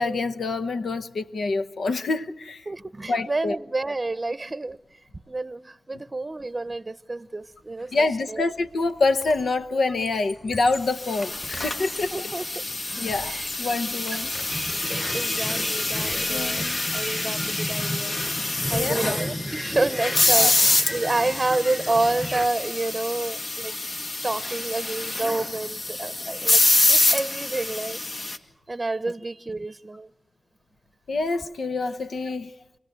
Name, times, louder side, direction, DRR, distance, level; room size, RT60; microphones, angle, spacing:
voice 1, 0.0-2.6 3.1-3.6 7.9-12.3 13.0-14.3 16.3-16.8 18.7-19.0 20.3-20.5 31.1-32.5, left 3 dB, 90° left, 0.9 m, -26 dB
voice 2, 2.7-4.8 5.3-8.5 12.1-12.6 13.2-13.5 15.1-23.7 24.2-28.0 28.7-30.1, right 2 dB, 35° right, 0.7 m, -29 dB
Squeak, 7.8-8.1 8.4-9.6 9.9-12.2 12.7-13.7 14.1-15.0 15.5-17.1, left 1 dB, 40° left, 5.9 m, -43 dB
sound 1, 10.9-28.4, left 2 dB, 60° left, 1.8 m, -26 dB
sound 2, 14.5-22.5, equal, 5° left, 1.0 m, -34 dB
27.5 x 17.5 x 8.2 m
cardioid pair, 55°, 0 cm